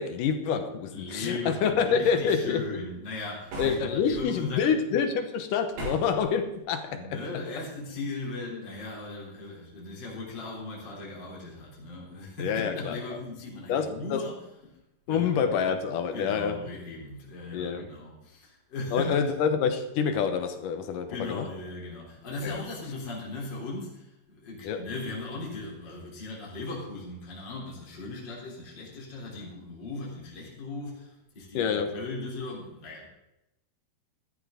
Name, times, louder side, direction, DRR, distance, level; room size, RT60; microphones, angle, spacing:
voice 1, 0.0-2.7 3.6-7.2 12.4-13.2 13.7-14.2 15.1-16.6 17.5-17.9 18.9-21.5 22.4-22.6 24.6-24.8 31.5-32.0, left 6 dB, 70° left, 8 dB, 2.4 m, -27 dB
voice 2, 0.9-4.7 6.9-14.8 15.1-15.5 16.1-19.3 21.1-33.1, left 2 dB, 30° left, -4 dB, 4.0 m, -38 dB
sound 1, 3.5-4.2 5.7-6.3, right 1 dB, 90° right, 7.3 m, -36 dB
14.0 x 14.0 x 3.9 m, 0.89 s
omnidirectional pair, 4.5 m